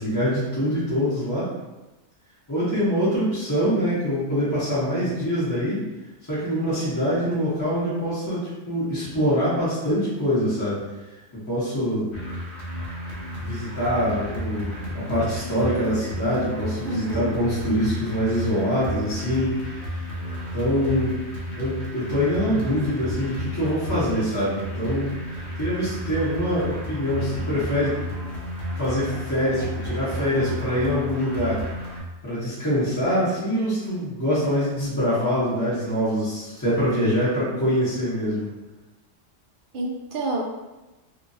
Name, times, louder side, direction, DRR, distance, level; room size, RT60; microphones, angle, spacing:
voice 1, 0.0-1.5 2.5-5.8 6.3-10.8 11.5-12.1 13.4-20.0 20.5-21.1 21.6-25.1 25.6-28.0 28.8-31.6 32.2-38.5, equal, 20° left, -11 dB, 0.8 m, -24 dB
sound 1, 12.1-32.0, left 1 dB, 65° left, 1.1 m, -32 dB
voice 2, 16.8-17.3 39.7-40.4, right 2 dB, 60° right, 1 dB, 0.6 m, -28 dB
2.9 x 2.5 x 2.6 m, 1.1 s
omnidirectional pair, 1.3 m